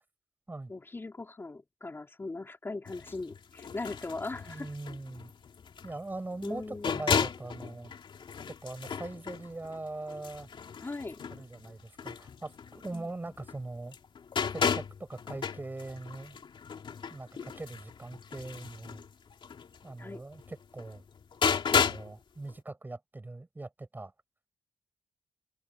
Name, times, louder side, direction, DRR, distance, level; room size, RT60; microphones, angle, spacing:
voice 1, 0.7-4.7 6.4-7.1 10.8-11.2 12.9-13.1 20.0-20.2, left 3 dB, 25° left, 2.8 m, -39 dB
sound 1, 2.9-13.6 13.9-22.2 22.5-22.6, left 6 dB, 55° left, 3.0 m, -34 dB
voice 2, 4.4-5.3 5.8-7.9 8.5-10.5 11.3-14.0 14.5-16.4 17.1-19.0 19.8-21.0 21.7-24.1, right 2 dB, 20° right, 6.9 m, -41 dB
wide cardioid pair, 115°, 10 cm